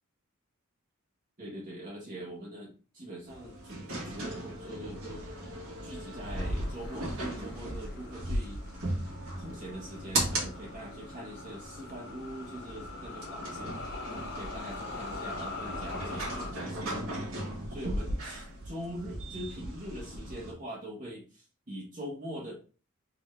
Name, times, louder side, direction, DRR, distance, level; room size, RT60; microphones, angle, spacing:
voice 1, 1.4-5.3 5.8-8.6 9.4-14.0 14.3-17.4 17.7-22.5, equal, 40° right, -3 dB, 1.2 m, -43 dB
sound 1, 3.3-20.5, right 1 dB, 70° right, 1.9 m, -37 dB
sound 2, 6.3-16.5, left 3 dB, 55° left, 0.9 m, -43 dB
4.0 x 3.9 x 3.3 m, 0.36 s
head